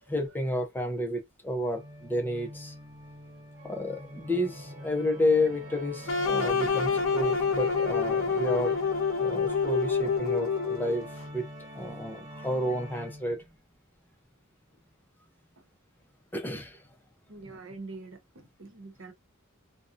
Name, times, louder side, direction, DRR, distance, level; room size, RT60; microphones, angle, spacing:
voice 1, 0.1-2.7 3.6-8.8 9.2-11.1 11.3-11.5 11.7-13.5 16.3-16.8, left 1 dB, 10° left, 0.5 m, -31 dB
Organ, 1.7-13.5, equal, 40° right, 1.1 m, -43 dB
sound 1, 6.1-11.0, left 5 dB, 85° left, 0.6 m, -27 dB
voice 2, 17.3-19.1, right 3 dB, 70° right, 0.8 m, -45 dB
2.5 x 2.1 x 2.4 m
head